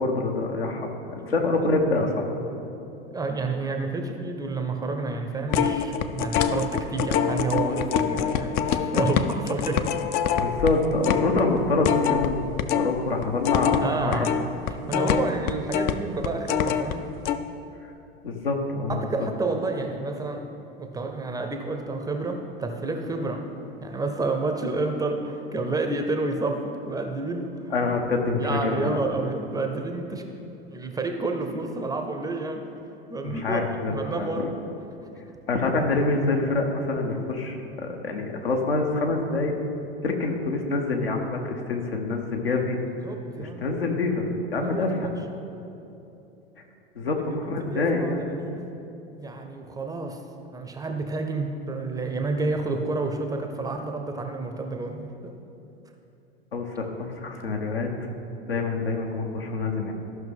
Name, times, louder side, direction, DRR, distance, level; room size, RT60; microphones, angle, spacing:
voice 1, 0.0-2.3 10.4-12.4 12.7-14.3 18.2-19.0 27.7-29.0 33.2-34.5 35.5-39.5 40.0-42.8 43.4-45.1 46.9-48.2 56.5-57.9 58.5-59.9, left 3 dB, 75° left, 2 dB, 1.1 m, -26 dB
voice 2, 1.2-1.7 3.1-9.9 13.8-17.1 18.9-20.5 20.8-23.5 23.8-27.7 28.4-32.6 33.1-34.5 43.0-43.7 44.6-45.1 47.0-47.1 47.5-48.7 49.1-50.2 50.5-55.3, right 3 dB, 10° right, 5 dB, 0.6 m, -30 dB
sound 1, 5.5-12.9 13.2-16.9 17.3-17.4, left 8 dB, 35° left, 0.4 m, -25 dB
14.0 x 5.8 x 3.5 m, 2.9 s
figure-of-eight pair, 80°, 30 cm